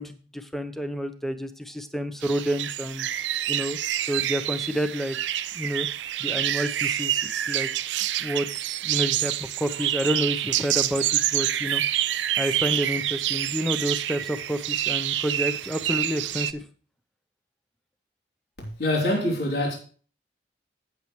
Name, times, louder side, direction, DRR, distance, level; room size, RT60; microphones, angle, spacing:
voice 1, 0.0-3.1 3.5-3.8 4.1-5.2 5.5-5.9 6.2-7.7 8.2-8.5 8.8-11.8 12.4-16.6, equal, ahead, 0.9 m, -29 dB
sound 1, 2.2-16.5, right 12 dB, 90° right, 0.4 m, -27 dB
voice 2, 18.6-19.7, left 1 dB, 60° left, 3.4 m, -25 dB
16.0 x 6.9 x 3.1 m
head